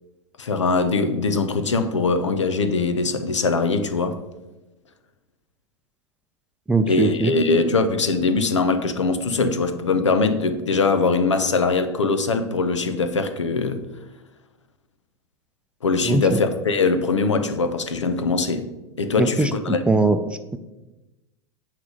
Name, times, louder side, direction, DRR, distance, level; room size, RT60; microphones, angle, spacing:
voice 1, 0.4-4.2 6.9-13.9 15.8-18.7 19.0-19.8, left 4 dB, 90° left, 0.8 m, -22 dB
voice 2, 6.7-7.3 16.0-16.4 19.2-20.6, right 3 dB, 5° right, 0.6 m, -21 dB
9.4 x 3.3 x 6.5 m
hypercardioid pair, 95°, 15 cm